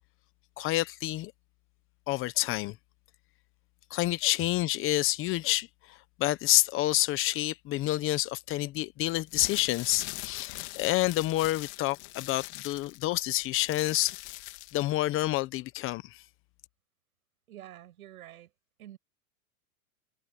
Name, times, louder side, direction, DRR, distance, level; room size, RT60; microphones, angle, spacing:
voice 1, 0.6-1.3 2.1-2.8 3.9-14.2 14.7-16.2, left 16 dB, 30° left, 1.0 m, -28 dB
sound 1, 9.3-14.9, left 24 dB, 50° left, 2.4 m, -42 dB
voice 2, 17.5-18.5 18.8-19.0, right 13 dB, 75° right, 7.8 m, -48 dB
supercardioid pair, 140°, 43 cm